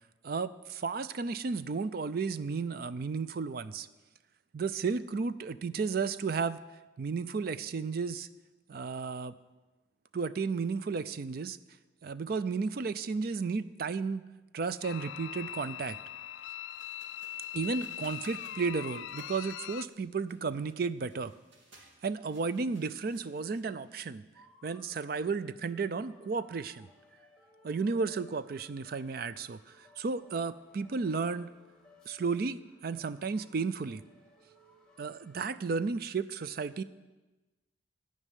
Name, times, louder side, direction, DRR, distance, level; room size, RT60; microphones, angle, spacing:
voice 1, 0.2-3.9 4.5-6.6 7.0-8.3 8.7-9.3 10.1-11.6 12.0-14.2 14.5-16.0 17.5-21.3 22.0-24.2 24.6-26.9 27.6-31.5 32.1-32.6 32.8-34.0 35.0-36.8, right 4 dB, 50° right, 14 dB, 0.4 m, -33 dB
sound 1, 14.8-19.9, left 11 dB, 70° left, 0.3 m, -41 dB
sound 2, 16.7-24.0, right 1 dB, 75° right, 2.8 m, -59 dB
sound 3, 24.3-35.6, left 2 dB, 5° left, 1.8 m, -61 dB
13.0 x 5.4 x 9.2 m, 1.1 s
head